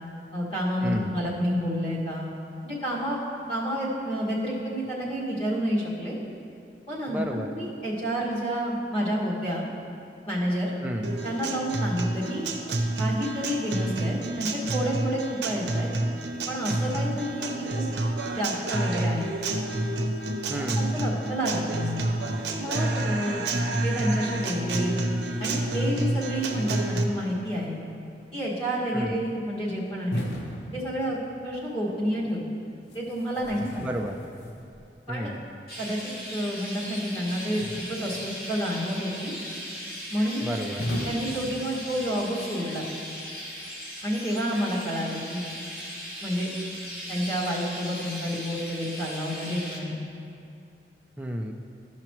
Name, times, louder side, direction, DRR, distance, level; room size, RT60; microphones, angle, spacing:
voice 1, 0.3-2.3 2.6-3.2 3.5-6.2 6.9-9.7 10.3-10.7 11.2-12.5 13.0-15.9 16.5-17.9 18.3-19.3 20.8-22.1 22.6-23.4 23.8-25.0 25.4-27.8 28.3-30.2 30.7-32.4 32.9-33.9 35.1-35.3 35.8-36.0 36.3-39.3 40.1-40.5 41.0-42.8 44.0-45.5 46.2-46.5 47.1-50.0, equal, 35° left, -8 dB, 2.0 m, -29 dB
voice 2, 0.8-1.2 7.1-7.5 10.8-11.1 20.5-20.9 28.9-29.2 33.8-34.2 35.1-35.4 40.4-40.9 51.2-51.5, equal, 10° right, 2 dB, 0.5 m, -32 dB
Guitar, 11.0-27.0, right 2 dB, 75° right, 0.8 m, -29 dB
sound 1, 30.1-31.6 32.9-34.9 37.6-38.4 40.8-42.2, equal, 80° left, 0.9 m, -36 dB
Chirp tweet, 35.7-49.8, equal, 60° left, 1.5 m, -38 dB
13.5 x 5.8 x 3.0 m, 2.6 s
head